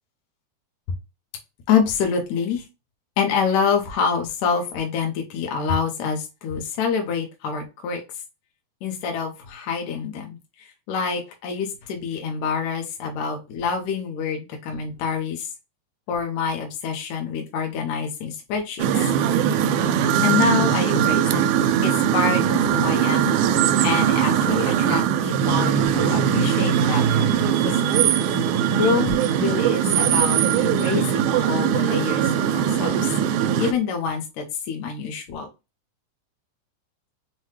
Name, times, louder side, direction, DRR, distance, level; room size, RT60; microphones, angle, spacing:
voice 1, 1.7-2.6 3.2-8.0 8.8-15.5 16.1-18.9 19.5-19.6 20.2-21.4 21.8-23.4 23.8-28.1 28.8-33.1 33.6-35.5, left 6 dB, 70° left, 3 dB, 2.0 m, -26 dB
sound 1, 18.8-33.7, right 9 dB, 85° right, 2.0 m, -20 dB
5.7 x 2.2 x 3.2 m, 0.26 s
omnidirectional pair, 3.6 m